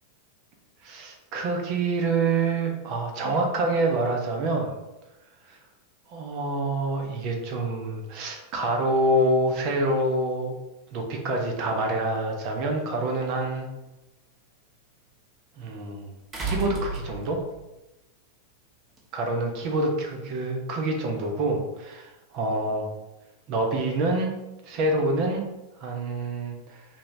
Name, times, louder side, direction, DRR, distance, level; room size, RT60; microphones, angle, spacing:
voice 1, 0.8-4.7 5.4-5.6 6.1-10.5 10.9-13.7 15.6-16.1 16.4-17.4 19.1-22.9 23.5-24.3 24.6-25.4 25.8-26.9, right 2 dB, 45° right, 2 dB, 0.9 m, -26 dB
sound 1, 16.3-17.6 19.0-19.1, right 2 dB, 25° right, 1.3 m, -32 dB
5.4 x 3.5 x 2.7 m, 1.0 s
figure-of-eight pair, 90°, 0 cm